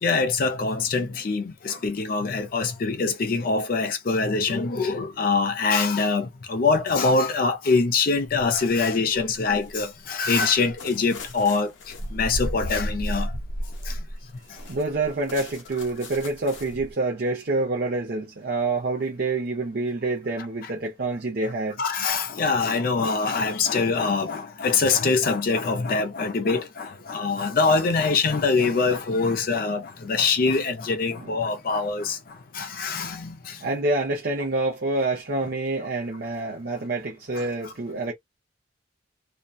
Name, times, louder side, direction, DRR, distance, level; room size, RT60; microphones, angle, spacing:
voice 1, 0.0-11.7 12.1-13.3 13.9-14.0 21.8-32.2 32.5-33.6 37.3-37.7, left 4 dB, 50° left, 0.4 m, -24 dB
sound 1, 8.2-8.7 9.2-16.9, equal, 80° left, 0.7 m, -34 dB
voice 2, 14.6-21.8 31.2-31.3 33.6-38.1, right 2 dB, 55° right, 0.5 m, -27 dB
2.6 x 2.1 x 2.2 m
head